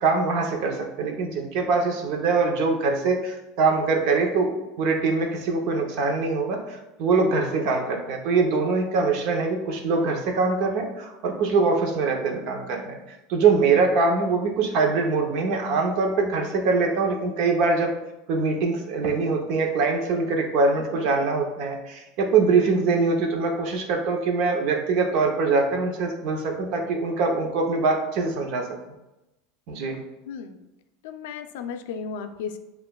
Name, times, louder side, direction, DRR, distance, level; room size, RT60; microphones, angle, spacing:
voice 1, 0.0-4.5 4.8-17.9 18.3-28.7 29.7-30.0, right 4 dB, 60° right, 2 dB, 0.8 m, -23 dB
voice 2, 30.3-30.6 31.0-32.6, left 6 dB, 80° left, 7 dB, 0.4 m, -34 dB
6.6 x 2.4 x 2.3 m, 0.97 s
supercardioid pair, 130°, 0 cm